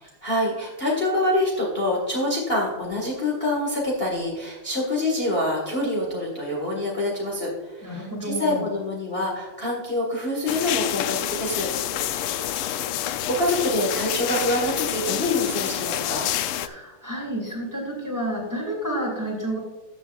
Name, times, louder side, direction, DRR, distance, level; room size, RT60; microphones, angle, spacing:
voice 1, 0.2-11.7 13.1-16.3, left 1 dB, 30° left, -3 dB, 1.7 m, -26 dB
voice 2, 7.8-8.7 11.8-12.8 16.5-19.6, right 1 dB, 10° right, -1 dB, 2.5 m, -31 dB
sound 1, 10.5-16.7, left 12 dB, 90° left, 1.5 m, -28 dB
14.5 x 7.3 x 2.4 m, 1.3 s
omnidirectional pair, 2.4 m